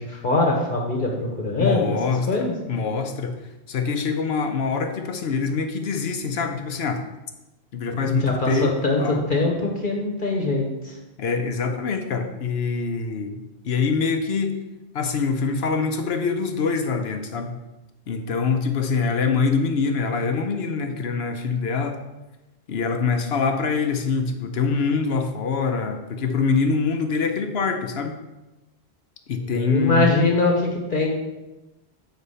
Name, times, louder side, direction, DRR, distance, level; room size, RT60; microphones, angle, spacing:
voice 1, 0.0-2.0 2.3-2.5 8.1-11.0 29.4-31.1, left 2 dB, 50° left, -1 dB, 1.3 m, -23 dB
voice 2, 1.6-3.4 3.7-7.0 7.7-9.2 11.2-13.4 13.6-14.6 14.9-17.6 18.1-22.0 22.7-28.2 29.3-30.1, left 5 dB, 70° left, 6 dB, 1.0 m, -24 dB
8.2 x 4.1 x 5.5 m, 1.0 s
omnidirectional pair, 1.1 m